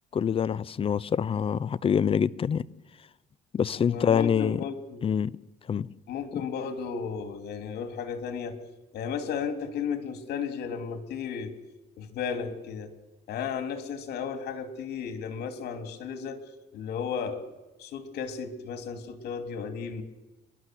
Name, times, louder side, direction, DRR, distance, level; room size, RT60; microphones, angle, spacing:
voice 1, 0.1-2.6 3.5-4.6 5.0-5.3 5.7-5.9, left 7 dB, 35° left, 18 dB, 0.6 m, -25 dB
voice 2, 3.9-5.0 6.1-8.6 8.9-11.5 12.0-12.9 13.3-16.4 16.7-17.4 17.8-20.0, left 6 dB, 70° left, 7 dB, 2.9 m, -34 dB
30.0 x 12.0 x 7.7 m, 1.1 s
cardioid pair, 110°, 17 cm